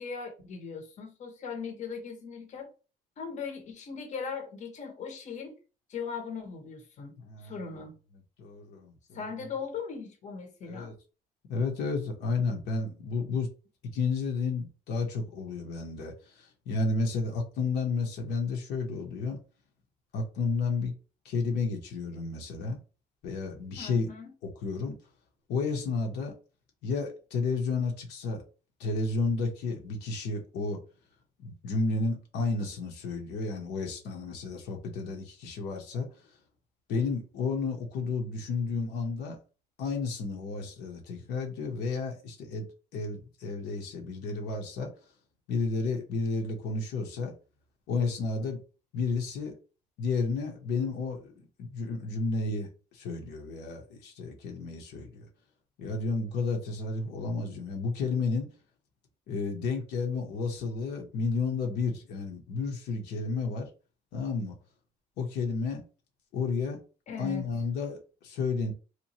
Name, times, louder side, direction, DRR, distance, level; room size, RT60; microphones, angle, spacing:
voice 1, 0.0-2.7 3.2-5.6 5.9-8.0 9.1-10.9 23.8-24.3 67.1-67.4, left 5 dB, 45° left, 0.8 m, -39 dB
voice 2, 7.2-7.8 8.4-9.2 10.6-10.9 11.5-13.5 13.9-19.4 20.1-20.9 21.2-22.8 23.2-24.1 24.4-25.0 25.5-26.4 26.8-28.4 28.8-30.8 31.4-36.1 36.9-39.4 39.8-42.7 42.9-44.9 45.5-47.3 47.9-48.6 48.9-49.6 50.0-55.3 55.8-58.5 59.3-63.7 64.1-64.5 65.2-65.8 66.3-66.8 67.2-68.7, left 4 dB, 80° left, 0.8 m, -32 dB
2.8 x 2.2 x 2.8 m
cardioid pair, 110°, 17 cm